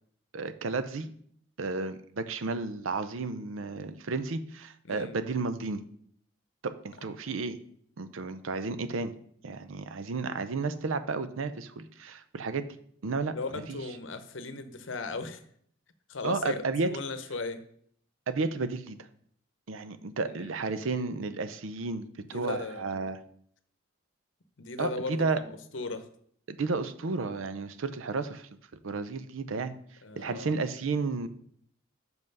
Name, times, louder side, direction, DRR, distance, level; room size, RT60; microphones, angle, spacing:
voice 1, 0.3-1.1 1.6-5.8 6.6-7.6 8.0-9.1 9.4-12.7 13.0-13.3 13.7-13.8 16.2-16.9 18.3-19.0 19.7-23.2 24.8-25.4 26.5-28.5 28.8-29.7 30.2-31.3, right 4 dB, 90° right, 12 dB, 0.6 m, -32 dB
voice 2, 13.3-15.4 16.1-17.6 20.4-20.5 22.3-23.0 24.6-26.1 30.0-30.6, left 3 dB, 75° left, 10 dB, 0.8 m, -37 dB
6.2 x 5.5 x 5.3 m, 0.64 s
head